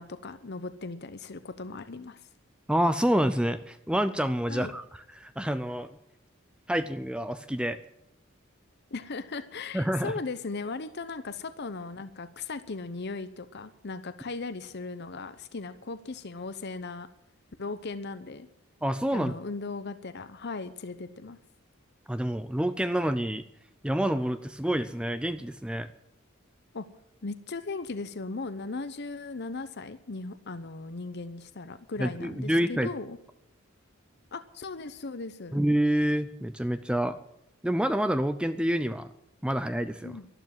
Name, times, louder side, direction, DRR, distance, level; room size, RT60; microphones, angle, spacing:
voice 1, 0.0-2.3 4.5-4.7 8.9-17.1 17.6-18.5 19.1-21.4 26.7-26.8 27.2-33.2 34.3-35.6 40.0-40.3, left 3 dB, 55° left, 12 dB, 0.9 m, -37 dB
voice 2, 2.7-4.8 5.2-5.9 6.7-7.8 9.7-10.1 18.8-19.3 22.1-23.4 23.8-25.9 32.0-32.9 35.5-37.2 37.6-39.1 39.4-40.1, equal, 5° right, 11 dB, 0.5 m, -27 dB
12.0 x 12.0 x 7.6 m, 0.83 s
head